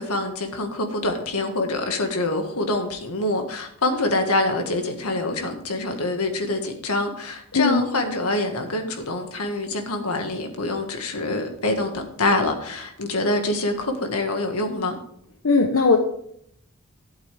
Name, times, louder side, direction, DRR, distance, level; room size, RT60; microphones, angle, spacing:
voice 1, 0.0-15.0, left 2 dB, 90° left, 5 dB, 1.8 m, -25 dB
voice 2, 7.5-7.9 15.4-16.0, left 4 dB, 70° left, 3 dB, 0.9 m, -18 dB
12.5 x 8.3 x 3.4 m, 0.70 s
head